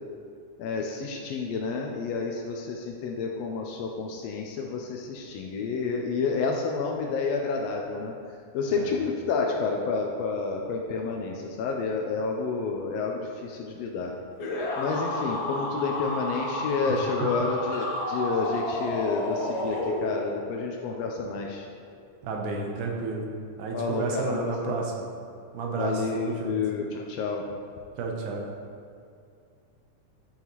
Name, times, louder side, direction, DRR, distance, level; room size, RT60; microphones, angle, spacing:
voice 1, 0.6-8.1 8.5-14.1 14.8-21.7 23.7-24.8 25.7-27.4, left 4 dB, 85° left, 1 dB, 1.4 m, -30 dB
sound 1, 14.4-20.4, left 1 dB, 70° left, 1.2 m, -31 dB
voice 2, 22.2-23.3 23.6-25.1 25.5-26.5 28.0-28.5, right 4 dB, 80° right, 0 dB, 2.3 m, -31 dB
9.8 x 5.5 x 3.0 m, 2.4 s
omnidirectional pair, 3.5 m